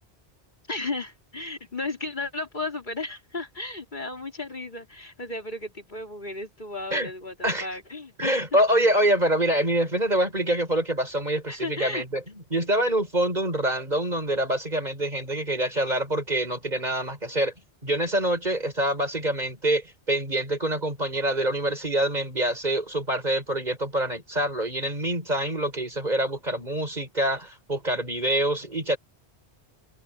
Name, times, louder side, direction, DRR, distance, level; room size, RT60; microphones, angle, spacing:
voice 1, 0.7-8.6 11.5-12.1, left 2 dB, 45° left, 3.5 m, -34 dB
voice 2, 8.2-17.5 17.8-29.0, right 1 dB, 40° right, 6.7 m, -25 dB
omnidirectional pair, 1.1 m